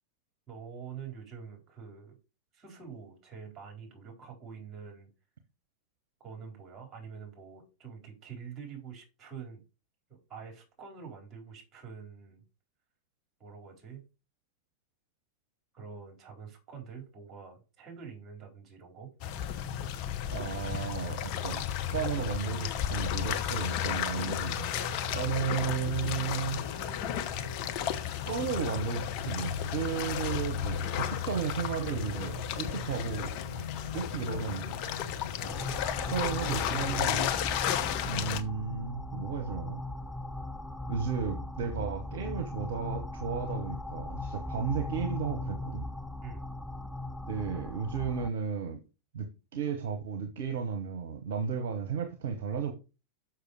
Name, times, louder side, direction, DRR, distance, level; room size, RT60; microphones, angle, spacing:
voice 1, 0.5-2.2 2.5-5.1 6.2-9.6 10.1-12.4 13.4-14.0 15.7-19.1 24.6-25.3 35.4-35.7 46.2-46.5, right 6 dB, 25° right, 4.5 m, -46 dB
sound 1, 19.2-38.4, left 10 dB, 40° left, 0.9 m, -33 dB
voice 2, 20.3-24.6 25.1-26.6 28.0-33.4 33.9-34.8 35.5-35.6 36.0-37.6 38.1-39.8 40.9-45.9 47.3-48.8 49.1-52.7, right 6 dB, 55° right, 1.2 m, -34 dB
sound 2, 23.0-40.2, left 6 dB, 85° left, 0.7 m, -44 dB
sound 3, 35.5-48.3, left 1 dB, ahead, 0.4 m, -38 dB
6.7 x 6.1 x 4.9 m
figure-of-eight pair, 90°, 0 cm